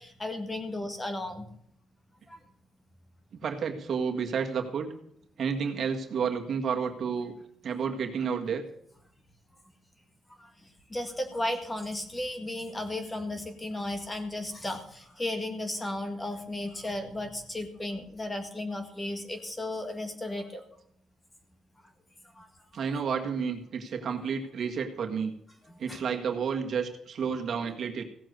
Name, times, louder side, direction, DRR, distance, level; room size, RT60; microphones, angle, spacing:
voice 1, 0.0-1.5 2.3-2.4 10.4-10.5 10.9-20.6 22.4-22.5 25.9-26.0, left 1 dB, 15° left, 6 dB, 1.9 m, -34 dB
voice 2, 3.4-4.9 5.4-7.3 7.6-8.6 22.7-25.3 25.8-28.0, right 6 dB, 50° right, 3 dB, 1.8 m, -31 dB
16.5 x 7.6 x 6.5 m, 0.70 s
cardioid pair, 135°, 0 cm